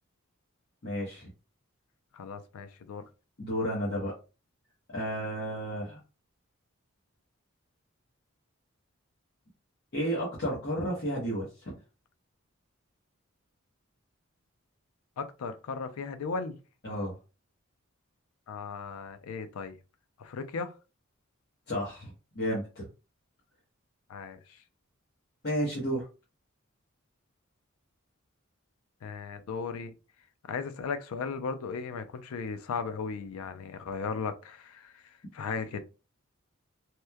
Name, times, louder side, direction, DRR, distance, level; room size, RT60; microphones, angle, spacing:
voice 1, 0.8-1.3 3.4-4.1 4.9-6.0 9.9-11.8 16.8-17.2 21.7-22.9 25.4-26.1, equal, 50° left, 0.8 m, -32 dB
voice 2, 2.1-3.0 15.2-16.6 18.5-19.8 20.2-20.8 24.1-24.6 29.0-30.0 30.4-35.9, left 5 dB, 85° left, 0.4 m, -36 dB
2.9 x 2.1 x 2.2 m
head